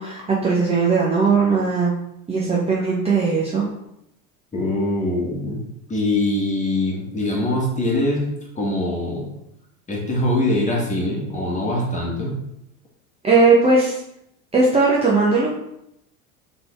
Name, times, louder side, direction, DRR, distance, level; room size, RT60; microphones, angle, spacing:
voice 1, 0.0-1.9 2.3-3.7 13.2-14.0 14.5-15.5, right 4 dB, 15° right, -6 dB, 0.9 m, -18 dB
voice 2, 4.5-5.6 5.9-8.3 8.5-9.3 9.9-12.4, left 1 dB, 15° left, -3 dB, 1.5 m, -23 dB
4.0 x 3.6 x 3.4 m, 0.81 s
figure-of-eight pair, 80°, 43 cm